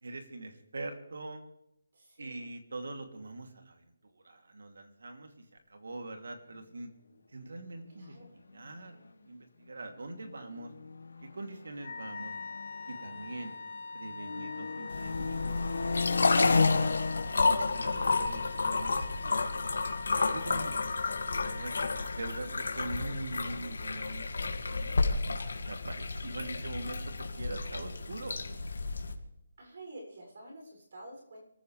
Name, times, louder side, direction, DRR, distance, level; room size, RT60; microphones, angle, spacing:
voice 1, 0.0-1.4 2.2-6.9 7.3-8.1 8.5-10.7 11.2-12.4 12.9-13.6 13.9-16.9 17.5-19.5 20.3-21.7 22.1-24.3 24.7-25.0 25.7-28.4, right 2 dB, 75° right, 4 dB, 2.9 m, -43 dB
voice 2, 1.9-2.5 8.0-8.3 14.5-14.9 23.0-23.3 29.6-31.4, right 1 dB, 50° right, 0 dB, 7.0 m, -50 dB
sound 1, 8.4-8.5 8.7-9.1 9.8-13.8 14.1-20.8, left 4 dB, 90° left, 1.6 m, -34 dB
Wind instrument woodwind instrument, 11.8-22.6, left 4 dB, 25° left, 3.4 m, -43 dB
sound 2, 14.9-29.1, left 3 dB, 70° left, 2.3 m, -32 dB
25.5 x 14.5 x 3.4 m, 0.80 s
hypercardioid pair, 180°, 0 cm